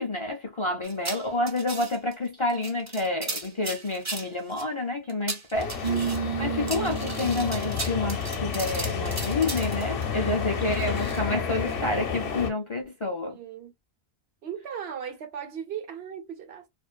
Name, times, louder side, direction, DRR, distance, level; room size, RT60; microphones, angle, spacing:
voice 1, 0.0-13.4, left 2 dB, 40° left, 0.4 m, -29 dB
sound 1, 0.8-2.1 2.5-4.6 5.1-6.2 6.7-10.0 10.7-11.2, right 2 dB, 25° right, 0.3 m, -37 dB
sound 2, 5.5-12.5, left 7 dB, 65° left, 0.8 m, -31 dB
sound 3, 5.8-12.5, right 7 dB, 50° right, 0.7 m, -36 dB
voice 2, 13.3-13.7 14.4-16.7, right 8 dB, 75° right, 1.0 m, -37 dB
2.4 x 2.2 x 2.4 m
omnidirectional pair, 1.1 m